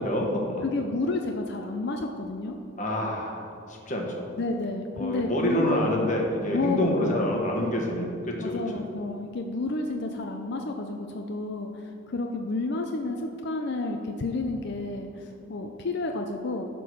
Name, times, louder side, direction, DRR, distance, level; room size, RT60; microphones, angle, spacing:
voice 1, 0.0-0.6 2.8-4.2 5.0-8.6, left 1 dB, 40° left, 0 dB, 1.3 m, -27 dB
voice 2, 0.6-2.6 4.4-5.8 6.5-7.2 8.4-16.6, left 2 dB, 55° left, 3 dB, 0.5 m, -30 dB
11.5 x 3.9 x 6.2 m, 2.7 s
head